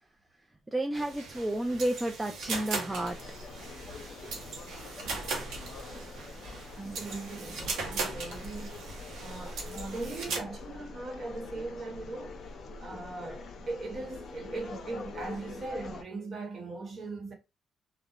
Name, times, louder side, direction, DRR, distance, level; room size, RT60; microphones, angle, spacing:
voice 1, 0.7-3.2 4.2-4.3 6.9-7.0, right 1 dB, 15° right, 0.3 m, -31 dB
sound 1, 0.9-10.4, right 4 dB, 85° right, 0.7 m, -39 dB
sound 2, 2.9-16.0, left 3 dB, 60° left, 0.5 m, -44 dB
voice 2, 6.8-8.8 9.2-12.4 12.8-17.3, right 2 dB, 45° right, 0.9 m, -39 dB
2.8 x 2.0 x 2.2 m
cardioid pair, 90°, 0 cm